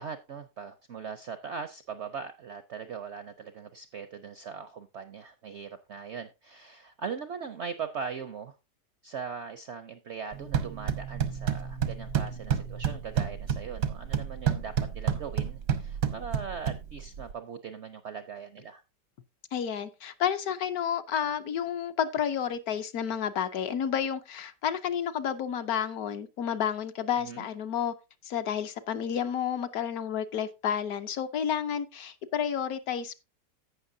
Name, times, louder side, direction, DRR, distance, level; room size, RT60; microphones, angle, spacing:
voice 1, 0.0-8.6 9.0-18.8 27.2-27.5, right 6 dB, 70° right, 0.6 m, -40 dB
sound 1, 10.3-17.3, right 7 dB, 90° right, 1.6 m, -30 dB
voice 2, 19.5-27.9 28.2-33.1, left 8 dB, 65° left, 1.1 m, -30 dB
16.0 x 5.8 x 2.6 m
omnidirectional pair, 1.8 m